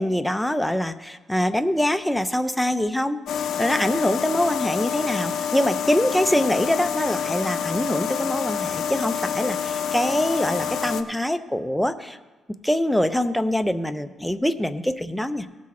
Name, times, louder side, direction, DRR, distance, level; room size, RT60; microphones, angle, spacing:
voice 1, 0.0-3.2 3.6-12.2 12.6-15.5, left 1 dB, 5° left, 10 dB, 0.6 m, -24 dB
sound 1, 3.3-11.0, left 8 dB, 70° left, 0.6 m, -27 dB
18.0 x 6.3 x 4.3 m, 1.2 s
cardioid pair, 90°, 0 cm